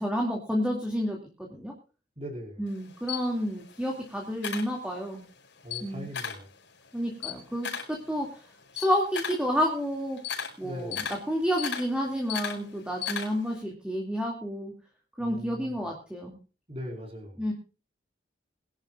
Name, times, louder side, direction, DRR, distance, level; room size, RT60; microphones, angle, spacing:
voice 1, 0.0-1.7 2.6-5.2 5.8-6.1 6.9-8.4 8.7-10.2 10.6-14.7 15.2-16.4 17.4-17.5, equal, 5° right, 0 dB, 2.3 m, -30 dB
voice 2, 2.2-2.6 5.6-6.5 10.6-11.1 15.2-15.8 16.7-17.5, equal, 35° right, 1 dB, 4.8 m, -40 dB
Camera, 2.7-5.3 5.6-6.5 6.9-13.6, left 7 dB, 85° left, 5.2 m, -36 dB
22.5 x 11.5 x 2.4 m, 0.35 s
head